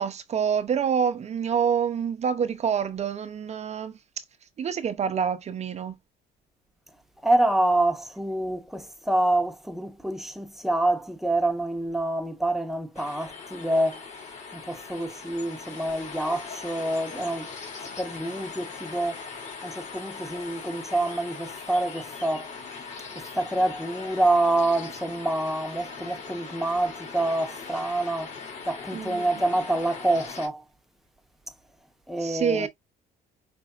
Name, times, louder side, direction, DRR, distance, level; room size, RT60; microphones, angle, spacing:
voice 1, 0.0-4.2 4.6-6.0 28.9-29.3 32.2-32.7, right 7 dB, 40° right, 0.6 m, -27 dB
voice 2, 7.2-14.1 14.5-17.5 18.0-19.2 19.6-22.5 23.1-28.4 28.6-30.6 32.1-32.7, right 1 dB, ahead, 1.0 m, -27 dB
sound 1, 12.9-30.5, left 5 dB, 45° left, 2.4 m, -40 dB
5.2 x 3.3 x 2.4 m
cardioid pair, 110°, 17 cm